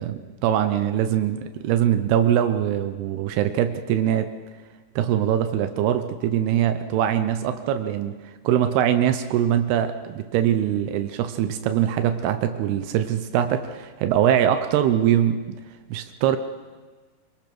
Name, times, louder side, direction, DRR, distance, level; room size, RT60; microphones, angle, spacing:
voice 1, 0.0-4.3 5.0-8.2 8.4-15.4 15.9-16.4, right 10 dB, 80° right, 9 dB, 2.8 m, -22 dB
25.5 x 21.0 x 6.1 m, 1.4 s
omnidirectional pair, 4.6 m